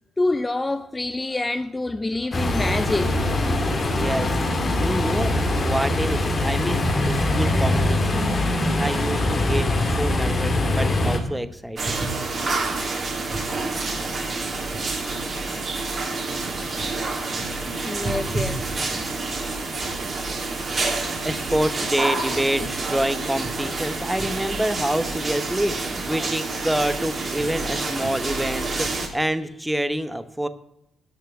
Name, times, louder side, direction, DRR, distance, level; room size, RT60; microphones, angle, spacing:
voice 1, 0.2-3.6 17.8-18.9, left 2 dB, 15° left, 0.6 m, -27 dB
sound 1, 2.3-11.2, left 1 dB, 35° left, 2.3 m, -22 dB
voice 2, 4.0-4.4 4.8-8.3 8.8-9.7 10.0-11.9 21.2-30.5, right 1 dB, 5° right, 0.9 m, -27 dB
sound 2, 11.8-29.1, right 3 dB, 40° right, 2.7 m, -28 dB
9.9 x 6.6 x 9.0 m
cardioid pair, 90°, 0 cm